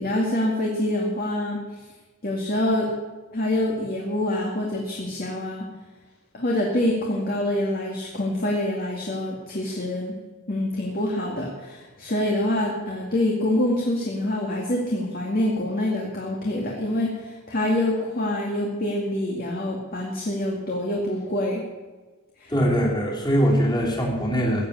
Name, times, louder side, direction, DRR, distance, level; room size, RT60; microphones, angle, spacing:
voice 1, 0.0-1.6 2.2-2.9 3.3-5.7 6.3-10.2 10.5-21.6 22.4-22.5, left 1 dB, 45° left, -2 dB, 2.1 m, -26 dB
voice 2, 22.5-24.7, equal, 20° left, -3 dB, 3.1 m, -22 dB
16.0 x 7.7 x 8.5 m, 1.3 s
head